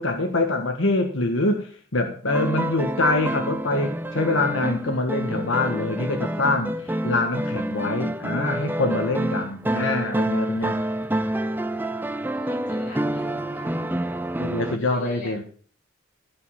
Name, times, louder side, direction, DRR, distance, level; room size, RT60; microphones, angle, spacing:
voice 1, 0.0-10.8 14.4-15.4, left 2 dB, 85° left, 4 dB, 1.6 m, -25 dB
sound 1, 2.3-14.8, right 1 dB, 10° right, 0.5 m, -28 dB
voice 2, 12.3-13.7 14.7-15.4, left 1 dB, 40° left, -1 dB, 6.3 m, -42 dB
15.5 x 5.6 x 7.2 m, 0.43 s
head